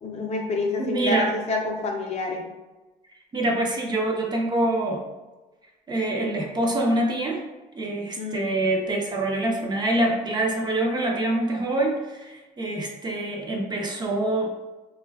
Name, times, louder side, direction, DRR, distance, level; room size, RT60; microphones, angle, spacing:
voice 1, 0.0-2.5 8.2-8.5, left 3 dB, 40° left, 1 dB, 0.5 m, -28 dB
voice 2, 0.8-1.3 3.3-5.0 5.9-7.4 7.8-14.6, right 1 dB, 25° right, 0 dB, 0.4 m, -25 dB
3.2 x 2.2 x 2.2 m, 1.1 s
cardioid pair, 110°, 17 cm